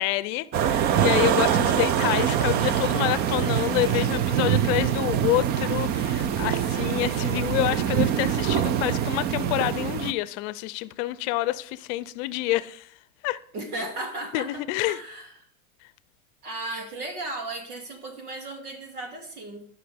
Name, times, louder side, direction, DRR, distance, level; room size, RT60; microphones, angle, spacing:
voice 1, 0.0-12.9 13.2-13.4 14.3-15.0, left 17 dB, 50° left, 0.6 m, -27 dB
sound 1, 0.5-10.1, right 9 dB, 25° right, 0.3 m, -24 dB
voice 2, 13.5-15.3 16.4-19.7, right 2 dB, 85° right, 2.6 m, -35 dB
15.0 x 5.9 x 3.5 m
hypercardioid pair, 105°, 43 cm